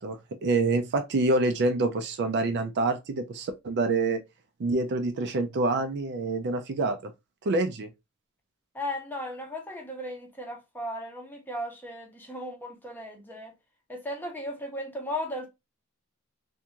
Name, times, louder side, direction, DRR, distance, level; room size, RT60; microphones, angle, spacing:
voice 1, 0.0-4.2 4.6-7.1 7.4-7.9, right 3 dB, 55° right, 0.4 m, -26 dB
voice 2, 8.7-13.5 13.9-15.5, left 1 dB, 10° left, 0.7 m, -36 dB
2.6 x 2.3 x 2.8 m
head